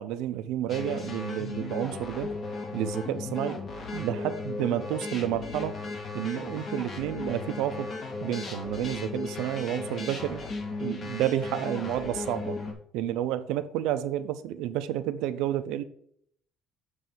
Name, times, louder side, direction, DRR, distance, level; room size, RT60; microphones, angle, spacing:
voice 1, 0.0-2.3 2.7-3.6 3.9-5.7 6.1-7.9 8.2-10.4 10.8-12.6 12.9-15.8, right 12 dB, 85° right, 0.5 m, -30 dB
sound 1, 0.7-12.7, left 3 dB, 35° left, 1.2 m, -36 dB
7.4 x 3.2 x 5.4 m
cardioid pair, 155°, 0 cm